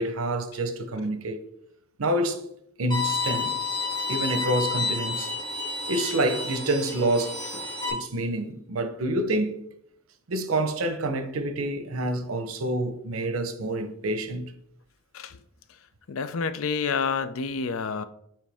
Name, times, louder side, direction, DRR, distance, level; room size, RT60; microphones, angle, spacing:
voice 1, 0.0-1.5 2.0-2.4 2.8-3.6 4.1-5.3 5.9-9.6 10.3-14.5, right 1 dB, 85° right, 0.7 m, -27 dB
Bowed string instrument, 2.9-7.9, left 4 dB, 20° left, 2.6 m, -30 dB
voice 2, 16.1-18.0, left 5 dB, 75° left, 0.5 m, -28 dB
7.6 x 4.6 x 3.4 m
head